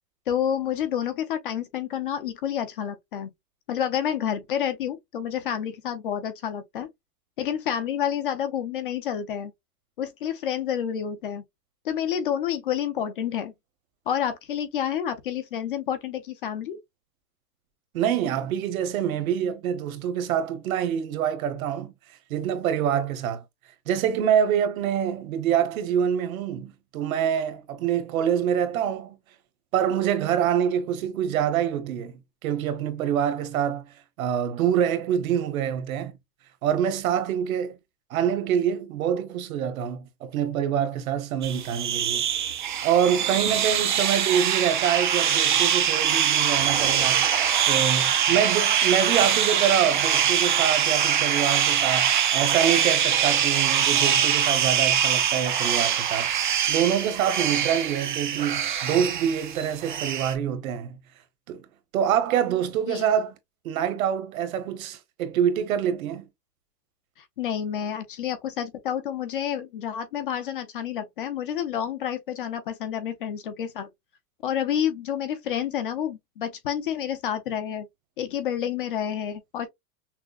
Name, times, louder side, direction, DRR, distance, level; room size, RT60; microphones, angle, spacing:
voice 1, 0.3-3.3 3.7-6.9 7.4-9.5 10.0-11.4 11.8-13.5 14.1-16.8 62.9-63.0 67.2-73.9 74.4-77.9 78.2-79.7, left 9 dB, 35° left, 0.5 m, -29 dB
voice 2, 17.9-21.9 22.3-23.4 23.9-29.2 29.7-32.1 32.4-33.8 34.2-36.2 36.6-37.8 38.1-42.2 42.8-47.3 47.7-56.3 56.7-61.0 61.5-61.6 61.9-63.4 63.6-66.3, right 9 dB, 60° right, 1.0 m, -25 dB
sound 1, 41.4-60.3, right 9 dB, 35° right, 0.4 m, -23 dB
6.0 x 2.0 x 2.3 m
supercardioid pair, 180°, 47 cm